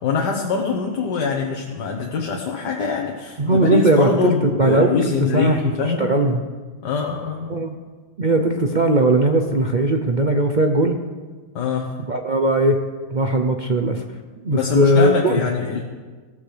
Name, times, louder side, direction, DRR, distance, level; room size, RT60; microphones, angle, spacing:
voice 1, 0.0-6.1 6.8-7.6 11.6-11.9 14.5-15.8, left 5 dB, 85° left, 0 dB, 1.7 m, -23 dB
voice 2, 3.4-6.4 7.5-7.7 8.2-11.0 12.1-12.8 13.1-14.0 14.4-15.3, right 2 dB, 55° right, 4 dB, 0.5 m, -19 dB
16.5 x 14.0 x 3.4 m, 1.4 s
omnidirectional pair, 1.8 m